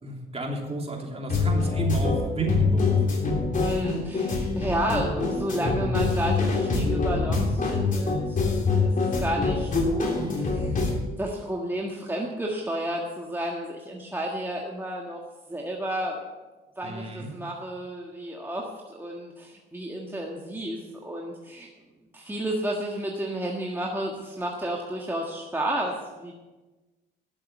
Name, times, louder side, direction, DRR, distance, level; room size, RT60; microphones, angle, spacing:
voice 1, 0.0-3.0 16.8-17.3, right 3 dB, 30° right, 0 dB, 3.0 m, -31 dB
sound 1, 1.3-10.9, left 3 dB, 40° left, 3.4 m, -25 dB
voice 2, 3.6-15.2 15.5-16.2 16.8-21.7 22.1-26.3, right 1 dB, 10° right, -2 dB, 1.6 m, -32 dB
12.0 x 7.6 x 6.6 m, 1.2 s
cardioid pair, 90°, 20 cm